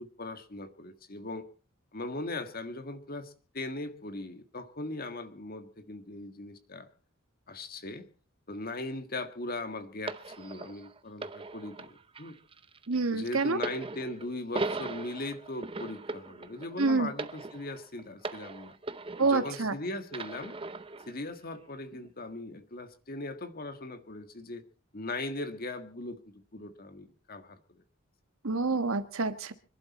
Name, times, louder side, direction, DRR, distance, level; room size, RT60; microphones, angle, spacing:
voice 1, 0.0-1.5 1.9-6.9 7.5-8.1 8.5-12.3 13.1-18.8 19.2-20.5 21.1-24.6 24.9-26.2 26.5-27.8, left 2 dB, 45° left, 9 dB, 1.7 m, -39 dB
sound 1, 10.1-19.7 20.1-21.1 21.9-22.1, right 3 dB, 25° right, 0.8 m, -39 dB
voice 2, 12.9-13.6 16.8-17.1 19.2-19.7 28.4-29.5, right 3 dB, 80° right, 10 dB, 1.4 m, -27 dB
26.0 x 11.5 x 4.2 m, 0.37 s
head